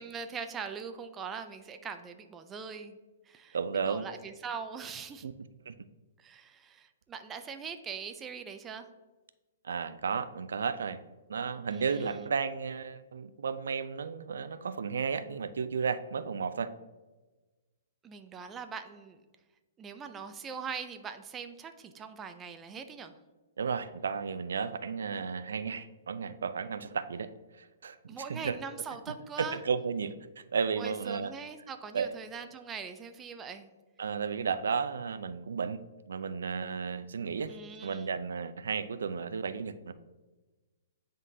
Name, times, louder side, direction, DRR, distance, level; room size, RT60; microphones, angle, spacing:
voice 1, 0.0-3.0 3.3-3.6 3.9-5.3 6.2-8.9 11.7-12.2 18.0-19.2 19.8-23.2 28.1-29.6 30.8-33.7 37.5-38.1, right 6 dB, 15° right, 7 dB, 0.4 m, -42 dB
voice 2, 3.5-4.1 5.2-5.3 5.7-5.8 9.6-11.0 11.3-16.7 23.6-27.3 27.6-28.0 28.3-28.6 29.4-31.3 31.9-32.1 34.0-35.8 36.1-39.9, right 6 dB, 85° right, 13 dB, 0.4 m, -33 dB
9.6 x 3.8 x 2.7 m, 1.2 s
hypercardioid pair, 155°, 0 cm